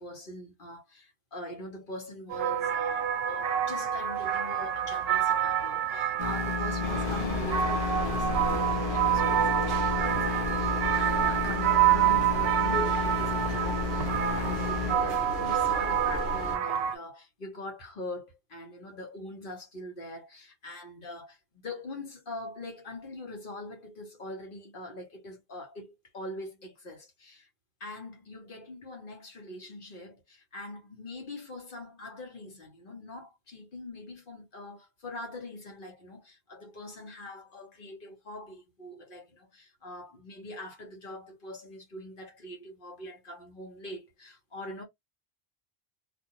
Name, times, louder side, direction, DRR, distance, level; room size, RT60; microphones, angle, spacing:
voice 1, 0.0-27.5 27.8-44.8, left 1 dB, 55° left, 1.2 m, -42 dB
sound 1, 2.3-17.0, right 10 dB, 75° right, 0.8 m, -28 dB
sound 2, 6.2-15.0, left 5 dB, 30° left, 0.6 m, -33 dB
sound 3, 6.8-16.6, left 2 dB, 80° left, 1.2 m, -36 dB
2.5 x 2.5 x 2.8 m
omnidirectional pair, 1.1 m